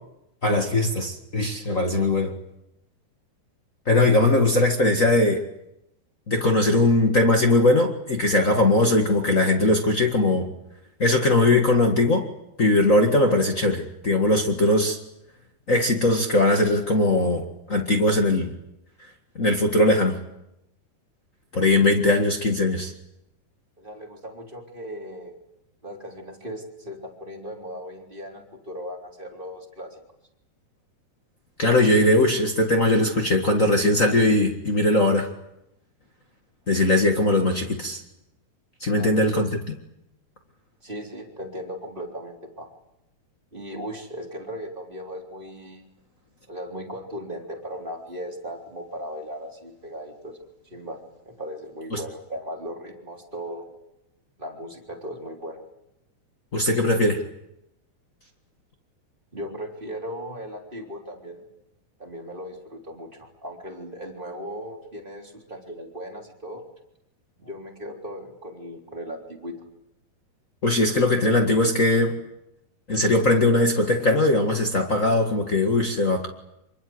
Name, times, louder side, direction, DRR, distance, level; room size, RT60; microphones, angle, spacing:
voice 1, 0.4-2.3 3.8-5.4 6.3-10.5 11.0-12.2 12.6-15.0 15.7-17.4 17.7-18.5 19.3-20.2 21.5-22.9 31.6-35.3 36.7-38.0 38.8-39.5 51.9-52.0 56.5-57.2 70.6-72.1 72.9-76.3, left 2 dB, 65° left, 3 dB, 0.7 m, -20 dB
voice 2, 23.8-25.3 25.8-30.0 38.9-39.2 40.8-42.7 43.5-45.8 46.5-50.4 50.7-51.0 51.2-53.6 54.4-55.6 59.3-61.4 62.0-66.6 67.4-69.6, equal, 15° right, 0 dB, 3.3 m, -37 dB
25.5 x 25.0 x 7.9 m, 0.87 s
omnidirectional pair, 4.7 m